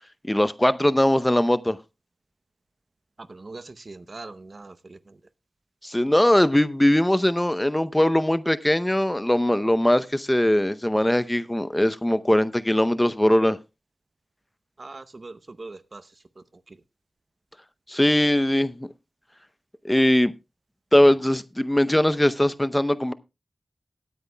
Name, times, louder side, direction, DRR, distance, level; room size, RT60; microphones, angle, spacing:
voice 1, 0.3-1.8 5.8-13.6 17.9-18.9 19.8-20.3 20.9-23.1, left 1 dB, 15° left, 0.6 m, -20 dB
voice 2, 3.3-5.0 14.8-16.0, right 3 dB, 55° right, 0.7 m, -41 dB
18.5 x 9.4 x 2.2 m
cardioid pair, 40°, 0 cm